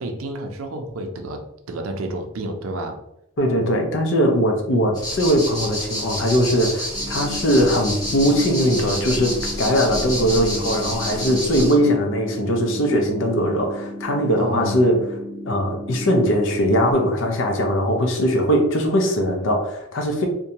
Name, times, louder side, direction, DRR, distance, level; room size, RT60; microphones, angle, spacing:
voice 1, 0.0-3.0 4.7-5.0 14.4-14.8, right 1 dB, 75° right, 5 dB, 0.5 m, -30 dB
voice 2, 3.4-15.0 15.5-20.3, equal, 60° left, 2 dB, 0.6 m, -20 dB
sound 1, 4.9-11.7, equal, 20° left, 0.9 m, -29 dB
sound 2, 6.9-16.9, equal, 30° right, 0.9 m, -35 dB
2.6 x 2.2 x 2.8 m, 0.80 s
head